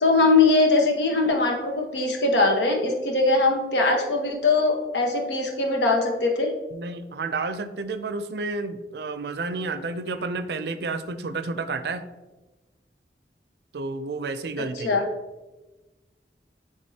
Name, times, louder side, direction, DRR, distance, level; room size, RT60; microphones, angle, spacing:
voice 1, 0.0-6.5 14.8-15.0, left 3 dB, 85° left, 2 dB, 1.1 m, -21 dB
voice 2, 6.7-12.0 13.7-15.0, right 3 dB, 65° right, 11 dB, 0.5 m, -31 dB
10.5 x 3.5 x 2.8 m, 1.1 s
head